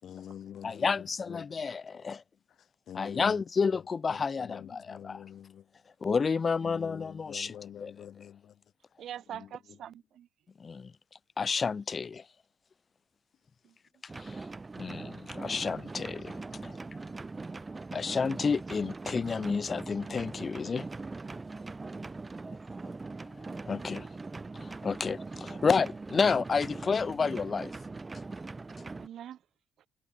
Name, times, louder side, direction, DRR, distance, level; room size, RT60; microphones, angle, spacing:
voice 1, 0.0-1.6 2.9-3.3 3.7-3.8 4.4-5.6 6.6-8.5 9.3-9.5, left 9 dB, 65° left, 0.4 m, -45 dB
voice 2, 0.6-2.2 2.9-5.2 6.0-8.1 10.6-10.9 11.4-12.2 14.1-14.4 14.8-16.8 17.9-20.9 23.7-24.1 24.6-27.7, left 5 dB, 40° left, 1.4 m, -30 dB
voice 3, 9.0-10.3 13.6-13.7 23.4-23.6 23.9-24.1 28.9-29.4, right 10 dB, 70° right, 0.7 m, -44 dB
sound 1, 14.1-29.1, right 3 dB, 25° right, 0.6 m, -41 dB
cardioid pair, 90°, 0 cm